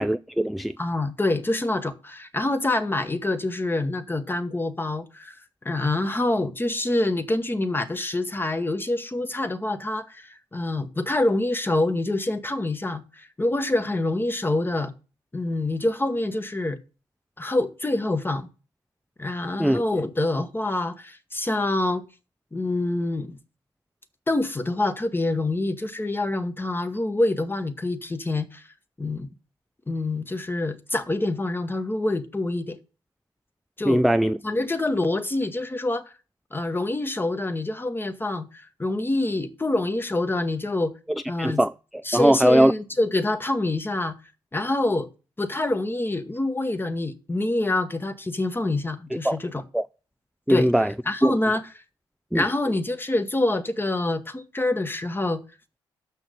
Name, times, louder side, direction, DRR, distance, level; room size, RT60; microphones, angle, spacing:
voice 1, 0.0-0.7 19.6-19.8 33.8-34.4 41.4-41.7 42.1-42.7 49.2-49.4 49.7-49.9 50.5-50.9 51.2-51.3 52.3-52.5, equal, ahead, 0.3 m, -20 dB
voice 2, 0.8-5.3 5.6-14.9 15.3-16.8 17.4-18.5 19.2-22.0 22.5-23.4 24.3-28.6 29.0-29.3 29.9-32.8 33.8-34.0 34.4-36.0 36.5-40.9 41.3-41.6 42.0-44.1 44.5-45.1 45.4-49.6 50.5-50.7 51.0-51.6 52.3-55.4, left 2 dB, 20° left, 1.2 m, -26 dB
6.3 x 5.8 x 6.6 m
hypercardioid pair, 50°, 11 cm